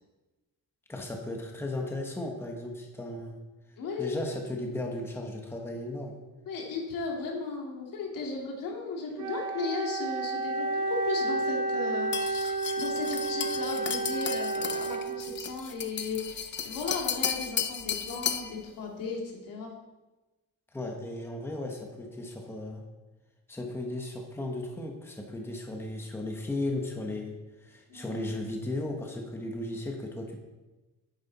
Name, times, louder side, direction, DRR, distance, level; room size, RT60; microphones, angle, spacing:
voice 1, 0.9-3.4 4.0-6.2 20.7-22.8 23.5-27.3 27.6-30.4, left 1 dB, 5° left, 1 dB, 1.1 m, -35 dB
voice 2, 3.8-4.2 6.5-19.8 27.9-28.3, left 3 dB, 75° left, -1 dB, 2.7 m, -36 dB
Wind instrument woodwind instrument, 9.2-15.5, right 3 dB, 55° right, 2.0 m, -31 dB
sound 1, 12.1-18.5, left 8 dB, 35° left, 0.6 m, -34 dB
10.5 x 9.3 x 4.1 m, 1.1 s
cardioid pair, 160°, 33 cm